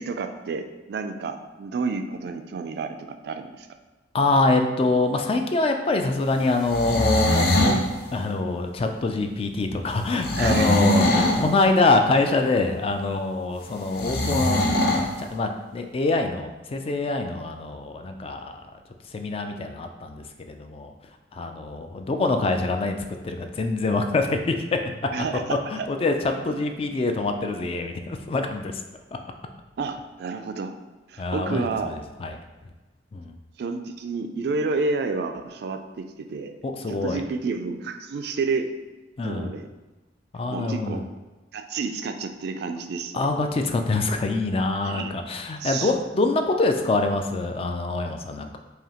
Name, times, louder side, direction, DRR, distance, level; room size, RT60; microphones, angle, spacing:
voice 1, 0.0-3.7 10.4-10.8 22.1-22.3 25.1-25.9 26.5-26.6 29.8-30.8 31.1-32.0 33.6-36.6 36.9-38.7 39.2-39.7 40.5-41.0 41.5-43.3 44.8-45.1 45.6-45.9, right 4 dB, 60° right, 7 dB, 0.3 m, -30 dB
voice 2, 4.1-7.8 8.1-18.6 19.1-20.9 21.3-23.0 23.2-24.9 25.5-28.8 31.2-32.4 33.1-33.3 36.6-37.2 39.2-39.5 40.3-41.0 43.1-48.6, left 3 dB, 30° left, 5 dB, 0.3 m, -25 dB
sound 1, 6.6-7.8 10.2-11.5 14.0-15.1, left 1 dB, 60° left, 0.7 m, -21 dB
4.9 x 2.7 x 2.9 m, 1.2 s
head